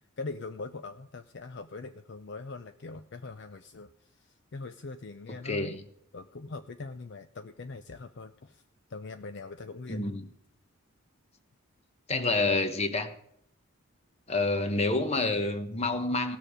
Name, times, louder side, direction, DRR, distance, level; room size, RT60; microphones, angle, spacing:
voice 1, 0.2-3.9 4.5-5.8 6.1-8.6 8.9-10.0 12.1-12.3, left 3 dB, 50° left, 9 dB, 0.5 m, -41 dB
voice 2, 5.4-5.9 9.9-10.3 12.1-13.1 14.3-16.4, left 2 dB, 30° left, 8 dB, 1.1 m, -28 dB
17.5 x 6.8 x 5.0 m, 0.72 s
head